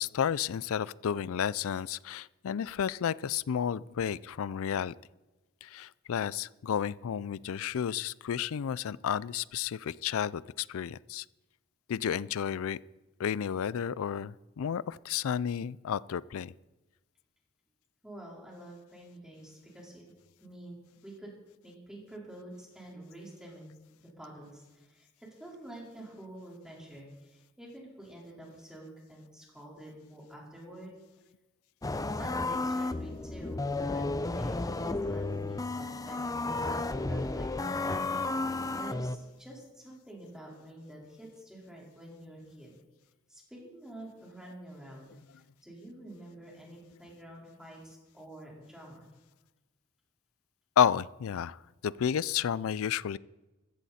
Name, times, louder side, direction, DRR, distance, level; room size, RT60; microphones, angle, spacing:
voice 1, 0.0-4.9 5.6-11.2 11.9-12.8 13.2-16.5 50.8-53.2, left 8 dB, 65° left, 21 dB, 0.4 m, -31 dB
voice 2, 18.0-20.1 20.4-21.3 21.6-23.7 24.0-30.9 32.0-34.1 34.4-38.0 38.3-42.7 43.3-49.1, right 1 dB, 5° right, -3 dB, 4.3 m, -48 dB
sound 1, 31.8-39.2, left 2 dB, 15° left, 0.6 m, -32 dB
14.5 x 14.5 x 4.3 m, 1.1 s
head